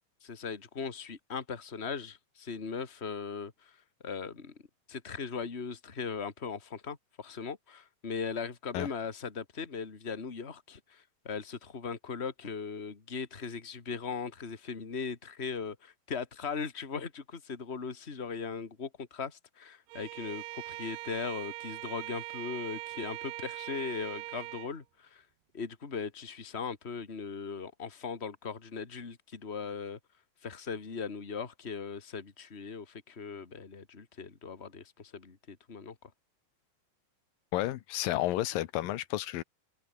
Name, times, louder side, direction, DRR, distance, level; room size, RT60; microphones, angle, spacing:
voice 1, 0.2-25.3 25.5-30.0 30.4-36.1, left 5 dB, 20° left, 2.3 m, -39 dB
Bowed string instrument, 19.9-24.8, right 21 dB, 80° right, 2.2 m, -41 dB
voice 2, 37.5-39.4, left 15 dB, 90° left, 2.8 m, -31 dB
open air
omnidirectional pair, 3.9 m